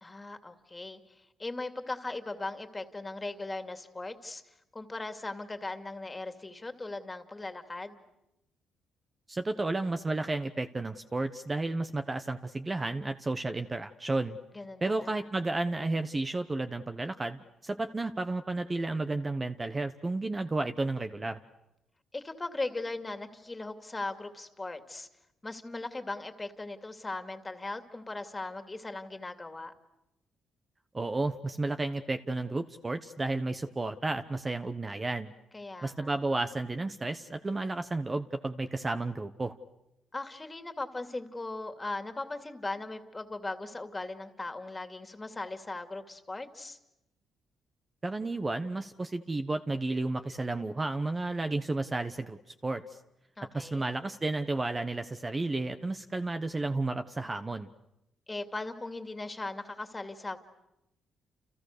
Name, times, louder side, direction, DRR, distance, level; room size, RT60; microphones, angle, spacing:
voice 1, 0.0-4.4 4.7-8.0 14.5-15.2 22.1-25.1 25.4-29.7 35.5-36.2 40.1-46.8 53.4-53.9 58.3-60.4, left 2 dB, 20° left, 7 dB, 2.5 m, -39 dB
voice 2, 9.3-14.4 14.8-21.4 30.9-35.3 35.8-39.6 48.0-53.0 53.5-57.7, right 2 dB, 25° right, 8 dB, 1.1 m, -32 dB
30.0 x 29.5 x 6.7 m, 0.88 s
cardioid pair, 90°, 0 cm